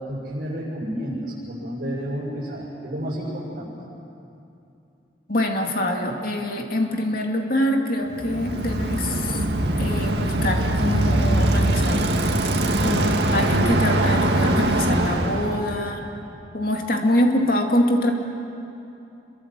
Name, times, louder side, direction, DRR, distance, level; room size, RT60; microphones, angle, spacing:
voice 1, 0.0-3.7, equal, 55° right, -7 dB, 7.2 m, -30 dB
voice 2, 5.3-9.4 9.8-12.2 12.8-16.1 16.5-18.1, left 1 dB, 55° left, 2 dB, 2.6 m, -24 dB
Bicycle, 8.1-15.6, right 1 dB, 70° right, 2.2 m, -22 dB
27.5 x 23.0 x 7.7 m, 2.7 s
head